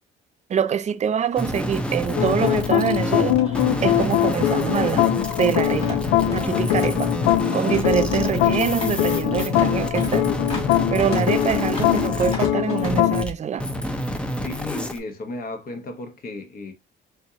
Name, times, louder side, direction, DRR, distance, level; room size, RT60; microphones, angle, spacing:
voice 1, 0.5-3.6 3.8-5.1 5.4-6.0 6.3-7.1 7.5-10.3 10.9-13.7, right 8 dB, 35° right, 0.5 m, -25 dB
sound 1, 0.9-1.0 1.3-1.4 2.2-12.9, left 1 dB, 30° left, 2.5 m, -37 dB
sound 2, 1.4-13.3 13.6-15.0, equal, 5° left, 0.7 m, -28 dB
sound 3, 2.2-13.2, left 13 dB, 85° left, 0.4 m, -22 dB
voice 2, 14.4-16.7, left 3 dB, 50° left, 1.1 m, -34 dB
4.3 x 2.9 x 2.7 m
cardioid pair, 100°, 20 cm